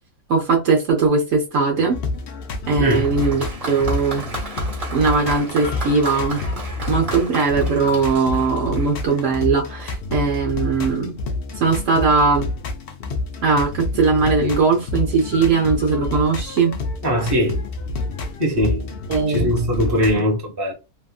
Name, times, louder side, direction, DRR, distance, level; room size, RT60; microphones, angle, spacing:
voice 1, 0.3-2.0 2.7-4.3 4.9-6.4 6.9-11.2 11.6-12.5 13.4-16.8 19.1-19.5, right 4 dB, 60° right, 1.0 m, -19 dB
sound 1, 1.7-20.2, left 3 dB, 75° left, 0.5 m, -28 dB
voice 2, 2.8-3.2 17.0-17.6 18.4-19.0 19.3-20.7, equal, 20° right, 0.8 m, -20 dB
Applause, 2.9-9.4 10.3-10.4, right 3 dB, 35° right, 1.1 m, -34 dB
2.9 x 2.5 x 2.3 m
omnidirectional pair, 1.6 m